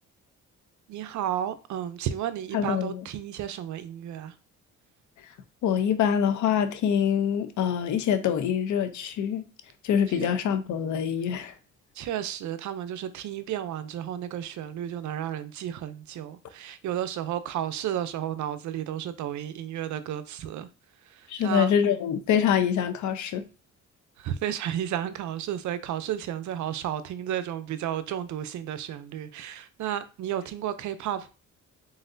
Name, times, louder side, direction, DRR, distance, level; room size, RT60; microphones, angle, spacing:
voice 1, 0.9-4.3 10.1-10.4 11.9-20.7 21.0-21.7 24.2-31.3, right 10 dB, 70° right, 0.6 m, -32 dB
voice 2, 2.5-3.0 5.6-9.4 9.8-11.5 21.3-23.4, left 8 dB, 75° left, 0.7 m, -25 dB
4.0 x 3.8 x 2.6 m
cardioid pair, 90°, 30 cm